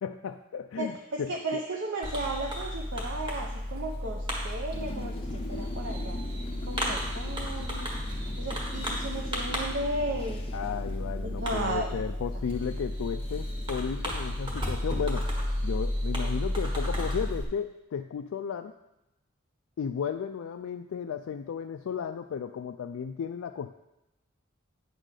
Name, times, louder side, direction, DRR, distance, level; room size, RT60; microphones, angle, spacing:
voice 1, 0.0-1.6 10.5-15.3 15.6-18.7 19.8-23.7, left 7 dB, 75° left, 7 dB, 0.3 m, -34 dB
voice 2, 0.8-6.2 6.7-7.9 8.4-10.4 11.2-11.9, right 2 dB, 60° right, 1 dB, 0.7 m, -35 dB
Fireworks, 2.0-17.4, equal, 25° right, 1.5 m, -33 dB
sound 1, 4.7-14.6, left 2 dB, 25° left, 0.6 m, -43 dB
9.0 x 3.8 x 6.5 m, 0.93 s
head